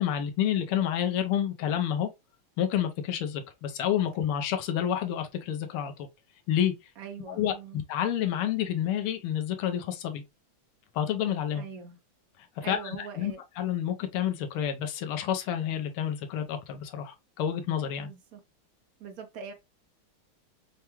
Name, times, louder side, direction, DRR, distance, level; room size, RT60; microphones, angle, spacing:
voice 1, 0.0-2.1 2.6-6.1 6.5-6.7 7.3-10.2 10.9-11.6 12.6-18.1, left 10 dB, 85° left, 1.6 m, -29 dB
voice 2, 7.0-7.8 11.5-12.0 12.6-13.4 18.0-18.4 19.0-19.5, right 6 dB, 75° right, 0.8 m, -42 dB
5.8 x 2.2 x 3.0 m
omnidirectional pair, 2.4 m